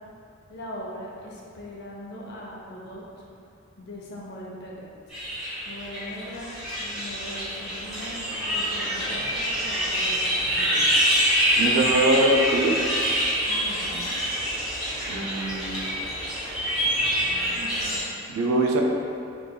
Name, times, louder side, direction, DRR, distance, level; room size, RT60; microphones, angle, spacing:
voice 1, 0.5-3.0 3.8-5.2 5.6-6.5 6.8-8.2 8.4-11.0 13.5-14.0 17.2-18.0, equal, 55° left, -4 dB, 0.6 m, -40 dB
sound 1, 5.1-18.0, equal, ahead, 1.2 m, -26 dB
voice 2, 11.6-13.0 15.1-15.9 18.3-18.8, right 1 dB, 85° right, 1 dB, 0.4 m, -23 dB
3.6 x 3.2 x 2.2 m, 2.5 s
head